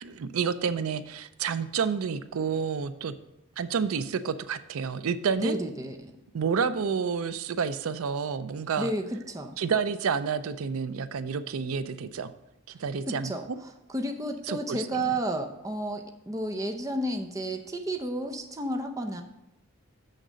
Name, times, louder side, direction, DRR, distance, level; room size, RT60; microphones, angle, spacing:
voice 1, 0.0-3.1 3.6-5.6 6.3-8.9 9.6-12.3 12.7-13.6 14.5-15.0, right 6 dB, 85° right, 13 dB, 0.4 m, -29 dB
voice 2, 5.4-6.1 8.8-9.6 13.1-19.2, right 1 dB, 15° right, 4 dB, 0.6 m, -32 dB
6.5 x 6.4 x 6.2 m, 0.90 s
head